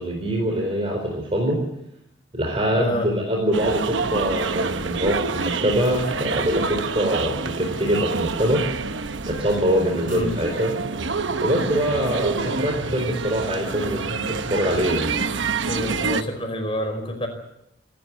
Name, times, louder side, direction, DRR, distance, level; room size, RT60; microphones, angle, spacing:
voice 1, 0.0-1.6 2.3-8.6 9.3-10.7 11.4-15.1, equal, 30° right, 1 dB, 4.2 m, -23 dB
voice 2, 2.8-3.1 10.1-10.3 15.7-17.3, left 1 dB, 30° left, 5 dB, 5.0 m, -28 dB
sound 1, 3.5-16.2, right 4 dB, 75° right, 1.0 m, -27 dB
27.0 x 12.5 x 9.7 m, 0.81 s
head